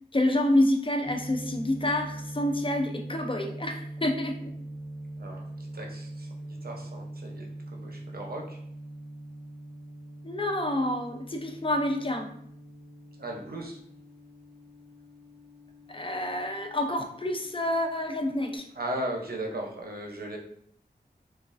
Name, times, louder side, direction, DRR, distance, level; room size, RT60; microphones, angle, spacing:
voice 1, 0.1-4.5 10.2-12.3 15.9-18.7, left 1 dB, 30° left, 5 dB, 0.4 m, -28 dB
sound 1, 1.0-18.6, right 1 dB, 20° right, 0.7 m, -42 dB
voice 2, 5.7-6.3 6.6-8.6 13.2-13.8 18.8-20.4, right 1 dB, 65° right, 0 dB, 0.6 m, -36 dB
3.1 x 2.3 x 2.4 m, 0.67 s
wide cardioid pair, 50°, 17 cm